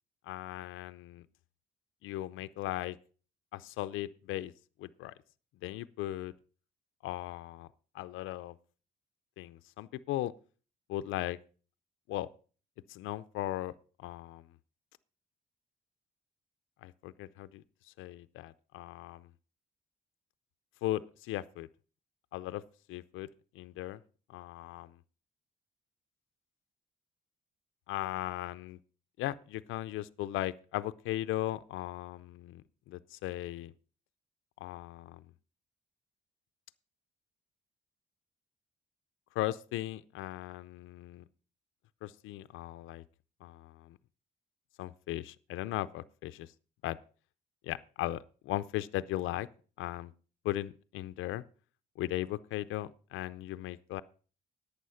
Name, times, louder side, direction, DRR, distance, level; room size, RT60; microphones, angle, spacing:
voice 1, 0.3-1.2 2.0-3.0 3.5-4.5 4.8-5.1 5.6-6.3 7.0-7.7 7.9-8.6 9.4-10.3 10.9-11.4 12.1-12.3 12.9-13.7 14.0-14.4 16.8-19.3 20.8-21.7 22.3-22.6 22.9-23.3 23.5-24.0 24.3-25.0 27.9-28.8 29.2-33.7 34.6-35.2 39.3-41.2 42.0-43.0 43.4-44.0 44.8-46.5 46.8-47.0 47.6-49.5 49.8-50.1 50.4-51.4 52.0-54.0, left 15 dB, 90° left, 13 dB, 0.5 m, -37 dB
11.5 x 8.5 x 5.7 m, 0.39 s
cardioid pair, 90°, 20 cm